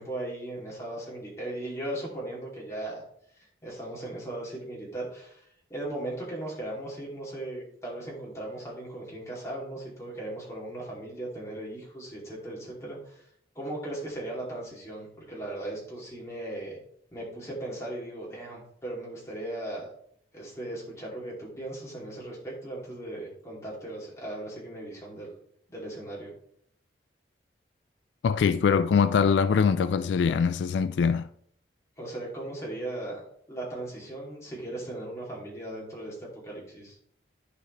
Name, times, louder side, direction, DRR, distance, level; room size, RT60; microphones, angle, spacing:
voice 1, 0.0-3.0 3.4-13.3 13.5-16.8 17.1-19.9 20.3-25.3 25.7-26.3 32.0-33.2 33.5-37.0, right 1 dB, 15° left, 2.6 m, -37 dB
voice 2, 28.2-31.3, left 6 dB, 85° left, 0.3 m, -23 dB
11.0 x 5.0 x 3.2 m
head